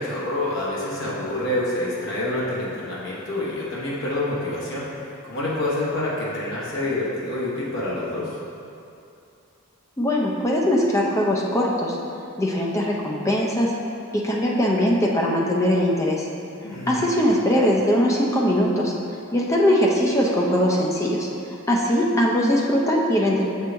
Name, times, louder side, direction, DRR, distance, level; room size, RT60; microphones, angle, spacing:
voice 1, 0.0-8.4 16.6-17.1, left 1 dB, 55° left, -7 dB, 1.2 m, -27 dB
voice 2, 10.0-12.0 12.4-13.7 14.1-16.3 16.9-18.9 19.3-21.3 21.7-23.4, equal, 15° left, -2 dB, 0.5 m, -21 dB
6.4 x 4.6 x 3.4 m, 2.6 s
head